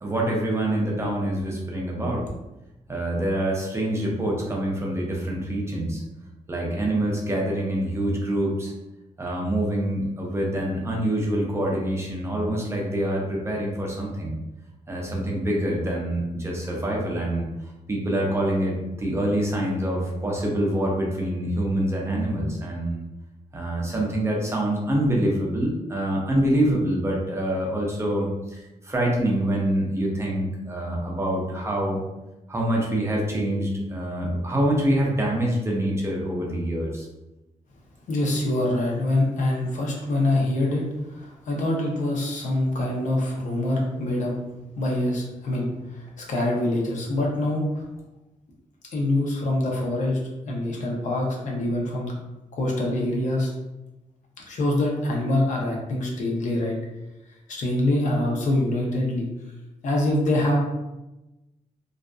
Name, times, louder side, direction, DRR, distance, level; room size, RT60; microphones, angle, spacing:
voice 1, 0.0-2.2 2.9-6.0 6.5-8.7 9.2-14.4 14.9-17.5 17.9-23.0 23.5-28.6 28.8-32.0 32.5-37.1, right 1 dB, 20° right, -2 dB, 0.4 m, -25 dB
voice 2, 38.1-40.8 41.1-44.4 44.8-45.7 45.9-47.8 48.9-50.2 50.5-52.1 52.5-53.5 54.5-56.7 57.5-59.3 59.8-60.6, left 1 dB, 65° left, -1 dB, 0.6 m, -25 dB
2.5 x 2.3 x 2.2 m, 1.0 s
wide cardioid pair, 165°, 14 cm